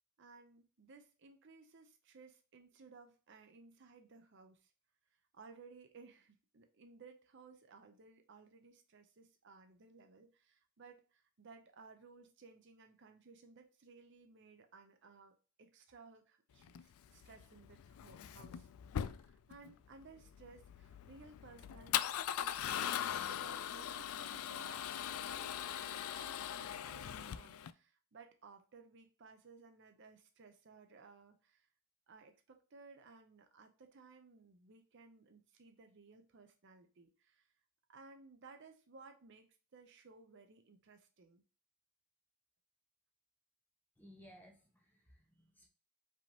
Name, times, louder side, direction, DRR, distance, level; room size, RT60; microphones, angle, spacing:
voice 1, 0.2-4.7 5.3-22.0 22.4-31.7 32.1-37.5 37.9-41.4, right 4 dB, 55° right, 6 dB, 0.6 m, -59 dB
Male speech man speaking / Car / Engine starting, 16.6-27.7, left 10 dB, 75° left, 0.3 m, -41 dB
voice 2, 44.0-45.7, equal, 10° left, 1 dB, 1.0 m, -60 dB
5.1 x 3.5 x 2.8 m, 0.35 s
head